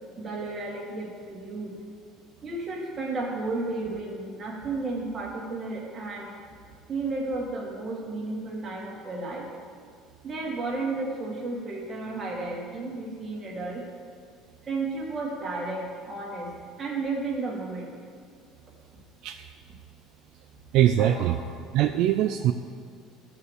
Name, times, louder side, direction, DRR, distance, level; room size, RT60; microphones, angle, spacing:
voice 1, 0.2-1.7 2.4-6.3 6.9-9.5 10.2-13.8 14.6-16.5 16.8-17.9 21.0-21.2 22.3-22.4, right 3 dB, 25° right, -2 dB, 2.2 m, -33 dB
voice 2, 20.7-21.4 21.7-22.5, right 12 dB, 60° right, 7 dB, 0.4 m, -22 dB
14.0 x 4.8 x 6.5 m, 2.2 s
cardioid pair, 150°, 0 cm